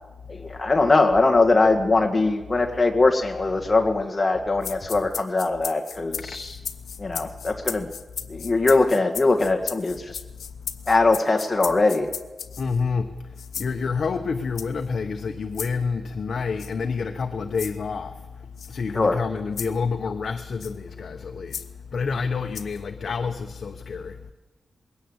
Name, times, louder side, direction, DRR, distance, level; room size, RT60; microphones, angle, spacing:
voice 1, 0.3-6.6 7.0-7.9 8.3-10.2 10.9-12.1 18.9-19.2, left 3 dB, 20° left, 1.9 m, -21 dB
sound 1, 4.6-12.8 13.4-13.7 14.5-14.9 15.5-15.7 16.6-16.7 17.5-17.8 18.6-18.7 19.6-19.8 20.6-20.8 21.5-21.7 22.5-22.8, left 7 dB, 80° left, 1.1 m, -35 dB
voice 2, 12.6-13.1 13.6-18.2 18.7-21.6 21.9-24.2, left 5 dB, 50° left, 1.1 m, -28 dB
21.5 x 17.5 x 8.1 m
wide cardioid pair, 155°, 0 cm